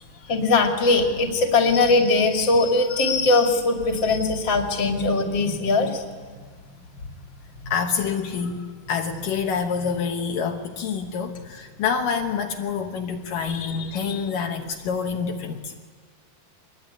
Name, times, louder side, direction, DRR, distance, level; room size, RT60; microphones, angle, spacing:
voice 1, 0.2-6.1 7.6-7.7, left 3 dB, 35° left, 3 dB, 3.0 m, -20 dB
voice 2, 7.7-15.7, left 6 dB, 70° left, 3 dB, 2.8 m, -27 dB
25.0 x 20.5 x 9.9 m, 1.5 s
omnidirectional pair, 4.1 m